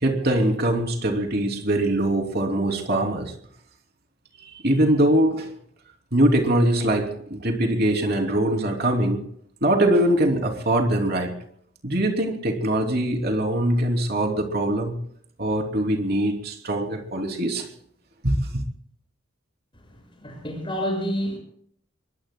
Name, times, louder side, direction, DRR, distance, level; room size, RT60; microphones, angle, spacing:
voice 1, 0.0-3.3 4.6-5.5 6.1-9.2 9.6-11.3 11.8-15.0 15.4-17.7 18.2-18.4, right 1 dB, 50° right, 3.1 m, -22 dB
voice 2, 20.2-21.4, equal, 25° left, 6.7 m, -28 dB
26.5 x 23.0 x 2.3 m
head